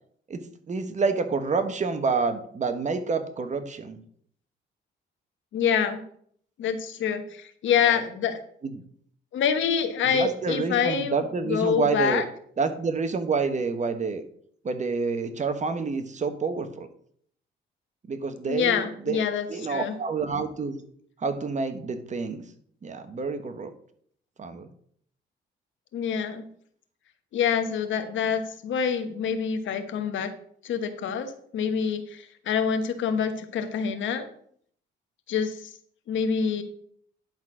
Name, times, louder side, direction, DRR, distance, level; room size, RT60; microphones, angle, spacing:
voice 1, 0.3-4.0 7.8-8.0 8.6-8.8 10.0-12.2 12.6-14.2 14.6-16.9 18.1-19.2 19.5-20.8 21.2-22.4 22.8-23.7 24.4-24.7, right 4 dB, 35° right, 9 dB, 1.2 m, -28 dB
voice 2, 5.5-6.0 6.6-8.4 9.3-12.2 18.5-19.9 25.9-26.4 27.3-30.3 30.6-34.3 35.3-35.7 36.1-36.6, left 7 dB, 75° left, 7 dB, 1.3 m, -26 dB
10.5 x 4.0 x 6.1 m, 0.62 s
cardioid pair, 90°, 20 cm